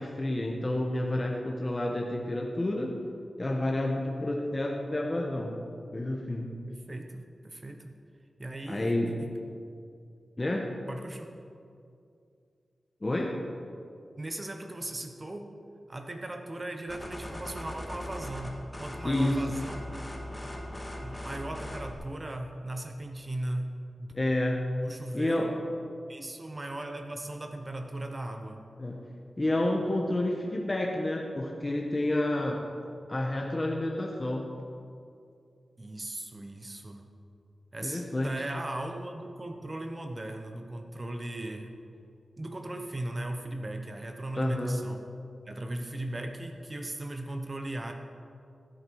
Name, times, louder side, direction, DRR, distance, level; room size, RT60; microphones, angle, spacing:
voice 1, 0.0-3.0 3.4-5.6 5.9-6.5 8.7-9.1 10.4-10.7 13.0-13.4 19.0-19.6 24.1-24.6 25.1-25.5 28.8-29.0 29.4-32.6 33.1-34.5 37.8-38.3 44.4-44.8, left 1 dB, 30° left, 0 dB, 1.2 m, -29 dB
voice 2, 6.7-7.9 8.4-9.3 10.9-11.3 14.2-15.5 15.9-18.5 18.8-19.8 21.0-23.7 24.0-24.1 24.8-25.5 26.1-28.6 35.8-37.0 37.7-41.8 42.4-45.0 45.5-47.9, right 1 dB, 30° right, 5 dB, 1.0 m, -38 dB
sound 1, 16.9-21.9, left 1 dB, 10° left, 2.0 m, -39 dB
15.5 x 8.7 x 4.8 m, 2.4 s
wide cardioid pair, 70°, 0 cm